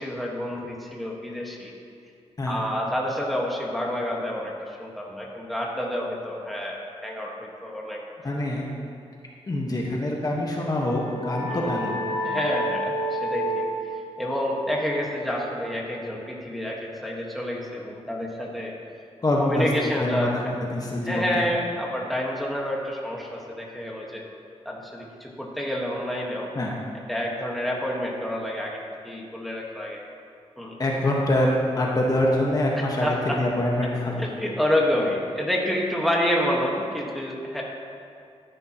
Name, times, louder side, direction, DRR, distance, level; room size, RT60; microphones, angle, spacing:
voice 1, 0.0-1.7 2.4-8.0 11.5-11.9 12.2-13.9 14.2-18.7 19.4-20.4 21.1-24.2 24.6-26.5 27.1-28.8 29.0-30.0 30.6-30.8 33.0-33.4 34.2-37.6, left 1 dB, ahead, -3 dB, 1.5 m, -28 dB
voice 2, 8.2-8.6 9.5-11.9 19.2-19.7 20.0-20.4 20.7-21.4 26.5-26.7 30.8-34.4, left 1 dB, 35° left, -2 dB, 1.4 m, -25 dB
sound 1, 10.6-16.0, equal, 65° left, 2.6 m, -31 dB
12.5 x 11.0 x 3.0 m, 2.4 s
wide cardioid pair, 110°, 11 cm